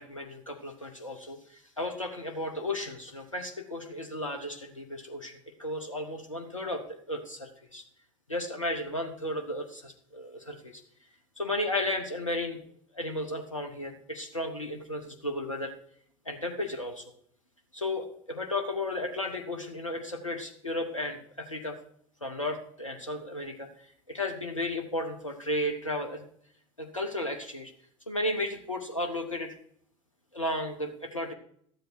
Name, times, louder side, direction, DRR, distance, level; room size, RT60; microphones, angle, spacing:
voice 1, 0.0-7.8 8.3-10.8 11.4-12.6 12.9-15.7 16.2-17.1 17.7-21.8 22.2-23.7 24.1-26.2 26.8-27.7 28.1-29.5 30.3-31.3, left 1 dB, 90° left, 4 dB, 0.9 m, -34 dB
13.0 x 7.8 x 4.6 m, 0.65 s
figure-of-eight pair, 65°, 16 cm